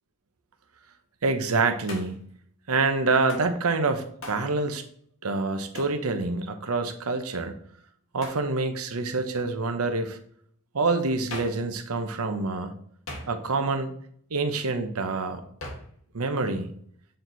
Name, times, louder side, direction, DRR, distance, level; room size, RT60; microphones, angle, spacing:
voice 1, 1.2-2.2 2.7-4.8 5.2-7.5 8.1-10.2 10.7-12.7 13.3-13.9 14.3-15.4 16.1-16.7, right 3 dB, 85° right, 7 dB, 0.9 m, -26 dB
Hands, 1.9-2.3 3.3-3.5 4.2-4.5 5.7-6.0 8.2-8.5 11.3-11.7 13.1-13.6 15.6-16.0, left 2 dB, 65° left, 1.8 m, -40 dB
7.9 x 4.5 x 4.0 m, 0.62 s
head